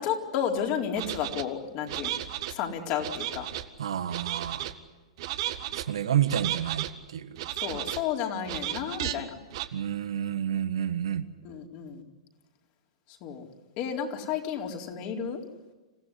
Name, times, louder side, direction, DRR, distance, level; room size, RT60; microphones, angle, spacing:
voice 1, 0.0-2.1 2.5-3.4 7.6-9.3 11.4-12.0 13.2-13.5 13.8-15.4, left 8 dB, 45° left, 2 dB, 4.2 m, -32 dB
sound 1, 1.0-1.4 1.9-2.5 3.0-3.7 4.1-4.7 5.2-5.8 6.3-6.9 7.4-8.0 8.5-9.1 9.5-9.7, right 13 dB, 55° right, 1.7 m, -33 dB
voice 2, 3.8-4.7 5.7-7.4 9.7-11.3, right 10 dB, 70° right, 11 dB, 1.5 m, -29 dB
27.0 x 16.5 x 10.0 m, 1.2 s
hypercardioid pair, 105°, 3 cm